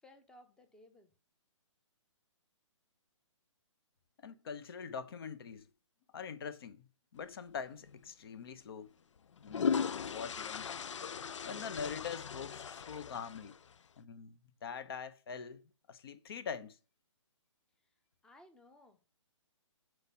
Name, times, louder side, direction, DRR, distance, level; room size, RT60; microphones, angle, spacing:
voice 1, 0.0-1.1 18.2-19.0, left 1 dB, 5° left, 0.7 m, -60 dB
voice 2, 4.2-5.7 6.1-6.8 7.1-8.9 9.4-9.7 10.0-10.7 11.4-13.6 14.0-16.8, left 6 dB, 50° left, 1.0 m, -43 dB
sound 1, 7.8-8.0 9.2-13.8, left 6 dB, 70° left, 0.4 m, -38 dB
8.0 x 4.6 x 5.5 m
figure-of-eight pair, 130°, 16 cm